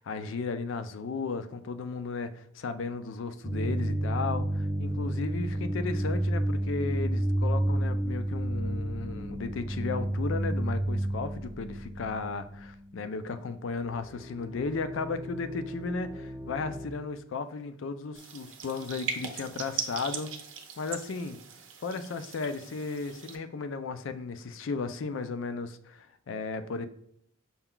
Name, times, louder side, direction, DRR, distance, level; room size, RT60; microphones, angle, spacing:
voice 1, 0.0-20.3 20.8-21.4 21.8-26.9, left 4 dB, 75° left, 11 dB, 0.4 m, -35 dB
sound 1, 3.4-13.4 13.6-16.9, right 1 dB, 15° right, 0.5 m, -31 dB
sound 2, 18.1-23.4, right 6 dB, 80° right, 0.7 m, -39 dB
5.6 x 2.3 x 3.7 m, 0.69 s
head